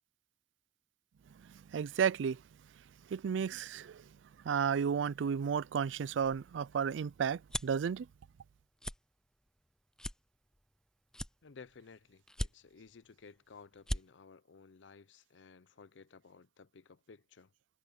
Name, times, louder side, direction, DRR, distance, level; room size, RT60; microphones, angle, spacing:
voice 1, 1.4-2.4 3.1-4.1 4.4-8.1, right 7 dB, 85° right, 0.4 m, -33 dB
sound 1, 6.2-7.8 8.3-8.5 8.8-9.0 9.5-9.6 10.0-10.8 11.1-11.8 12.3-12.9 13.4-13.5 13.7-14.0, left 1 dB, 5° left, 0.4 m, -39 dB
voice 2, 11.4-17.5, left 5 dB, 80° left, 0.6 m, -56 dB
head